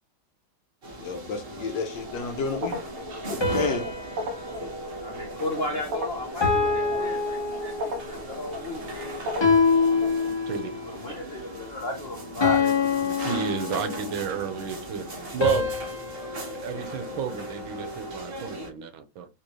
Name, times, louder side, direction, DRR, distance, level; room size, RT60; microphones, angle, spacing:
sound 1, 0.8-18.7, right 1 dB, 40° right, 0.9 m, -39 dB
voice 1, 1.0-2.8 3.3-3.9, left 5 dB, 65° left, 1.4 m, -31 dB
sound 2, 2.0-10.3, left 1 dB, 65° right, 1.5 m, -38 dB
sound 3, 3.4-5.9 6.4-8.2 9.4-10.9 12.4-14.3 15.4-17.8, left 5 dB, 20° left, 0.7 m, -26 dB
voice 2, 5.0-9.3 10.9-12.9, left 1 dB, 85° left, 0.5 m, -34 dB
voice 3, 10.3-10.7 13.0-15.1 15.3-15.7 16.6-19.3, right 8 dB, 80° right, 1.6 m, -31 dB
4.2 x 3.0 x 3.0 m
omnidirectional pair, 2.2 m